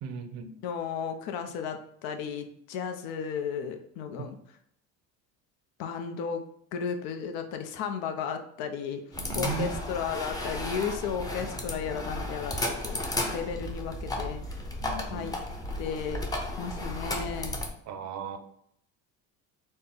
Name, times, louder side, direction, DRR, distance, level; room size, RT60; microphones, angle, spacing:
voice 1, 0.0-0.6 4.2-4.3 9.2-9.7 14.8-15.3 17.9-18.4, right 6 dB, 50° right, 7 dB, 0.5 m, -36 dB
voice 2, 0.6-4.4 5.8-6.4 6.7-9.0 9.3-13.0 13.3-14.4 15.0-15.3 15.8-16.2 16.6-17.6, left 7 dB, 75° left, 6 dB, 0.6 m, -34 dB
sound 1, 9.1-17.7, left 1 dB, 10° left, 0.6 m, -34 dB
4.2 x 2.1 x 3.5 m, 0.69 s
cardioid pair, 115°, 36 cm